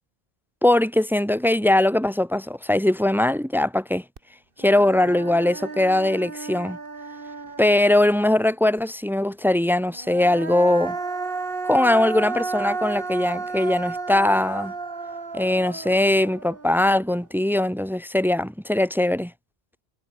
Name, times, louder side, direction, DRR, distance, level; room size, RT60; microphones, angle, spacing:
voice 1, 0.6-4.0 4.6-6.8 7.6-11.0 11.6-14.7 15.3-19.3, left 1 dB, 5° right, 0.4 m, -21 dB
Human voice, 4.2-4.3 4.6-8.3 9.9-17.2, right 4 dB, 60° right, 2.1 m, -32 dB
omnidirectional pair, 1.1 m